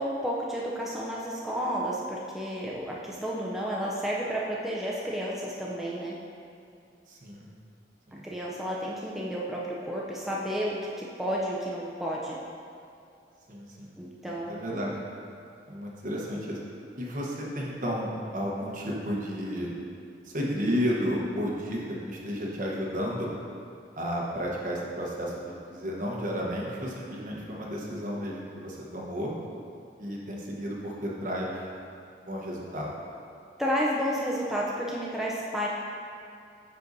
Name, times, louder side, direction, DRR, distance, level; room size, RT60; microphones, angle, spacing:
voice 1, 0.0-6.1 8.2-12.4 14.0-15.0 33.6-35.7, equal, ahead, -5 dB, 0.4 m, -31 dB
voice 2, 7.1-7.5 8.1-8.3 13.5-13.9 14.3-15.0 15.7-16.6 17.0-19.7 20.2-23.3 24.0-29.3 30.0-31.6 32.2-32.9, equal, 50° right, -3 dB, 1.0 m, -32 dB
9.6 x 4.0 x 2.6 m, 2.5 s
head